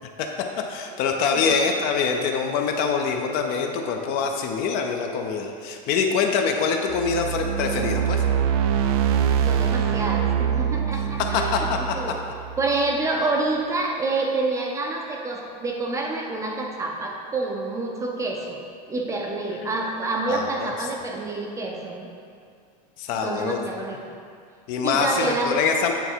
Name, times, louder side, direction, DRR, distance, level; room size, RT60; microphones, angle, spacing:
voice 1, 0.2-8.2 11.2-12.0 20.3-20.7 23.0-23.6 24.7-25.9, left 5 dB, 45° left, 3 dB, 0.6 m, -24 dB
sound 1, 6.9-13.1, right 8 dB, 65° right, 0.5 m, -24 dB
voice 2, 9.2-12.2 12.6-18.6 18.9-22.1 23.2-24.0 24.8-25.6, right 3 dB, 15° right, 0 dB, 0.5 m, -28 dB
9.0 x 3.4 x 4.5 m, 2.3 s
supercardioid pair, 155°, 21 cm